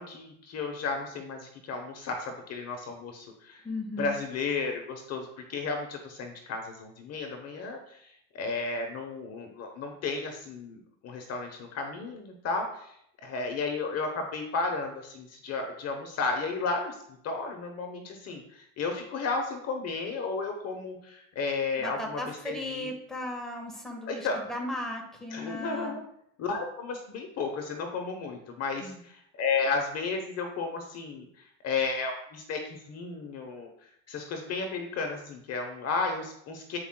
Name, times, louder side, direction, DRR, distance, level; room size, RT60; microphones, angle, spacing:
voice 1, 0.0-3.6 4.0-12.9 13.2-17.0 17.2-22.9 24.1-24.4 25.3-26.0 26.4-31.3 31.6-33.7 34.1-36.8, left 4 dB, 45° left, 4 dB, 1.0 m, -33 dB
voice 2, 3.6-4.2 21.8-26.0 28.8-29.0, left 1 dB, ahead, 0 dB, 1.5 m, -36 dB
9.0 x 4.8 x 2.3 m, 0.72 s
cardioid pair, 135°, 34 cm